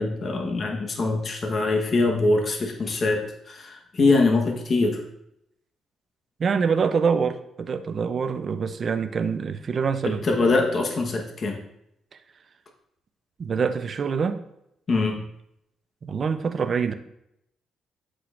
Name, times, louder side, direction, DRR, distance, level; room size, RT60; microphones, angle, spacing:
voice 1, 0.0-5.0 10.0-11.6 14.9-15.2, left 3 dB, 45° left, 2 dB, 1.1 m, -23 dB
voice 2, 6.4-10.2 13.4-14.4 16.0-16.9, right 6 dB, 45° right, 8 dB, 0.5 m, -25 dB
8.0 x 6.2 x 2.5 m, 0.79 s
cardioid pair, 90°, 0 cm